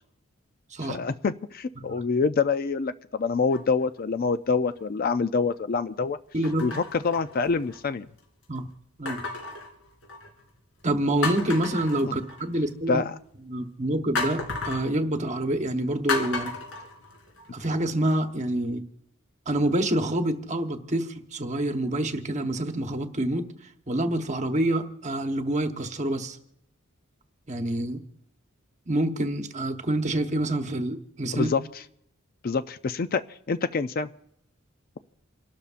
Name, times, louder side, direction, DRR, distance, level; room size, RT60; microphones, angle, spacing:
voice 1, 0.9-6.2 6.6-8.1 12.0-12.2 12.9-13.1 31.3-31.6 32.4-33.2 33.5-34.1, left 4 dB, 45° left, 12 dB, 0.4 m, -26 dB
sound 1, 3.5-4.0 4.7-4.8 6.4-7.9 9.1-10.4 10.8-10.9 11.2-12.7 14.2-14.9 16.1-17.7 18.1-18.2, left 3 dB, 60° left, 3.6 m, -33 dB
voice 2, 6.3-6.7 8.5-8.7 9.0-9.2 10.8-13.0 13.5-16.5 17.5-18.8 19.5-23.5 23.9-26.4 27.5-28.0 28.9-31.5, right 1 dB, 35° right, 6 dB, 1.1 m, -27 dB
29.0 x 12.5 x 2.5 m, 0.74 s
head